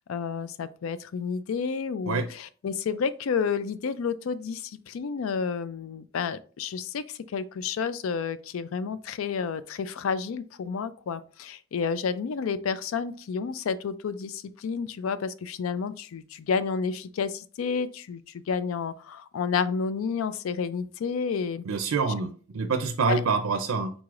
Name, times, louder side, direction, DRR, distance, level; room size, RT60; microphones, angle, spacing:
voice 1, 0.1-21.6 23.1-23.2, left 6 dB, 80° left, 0.4 m, -30 dB
voice 2, 21.6-23.9, right 4 dB, 90° right, 0.5 m, -26 dB
4.7 x 3.9 x 2.4 m
head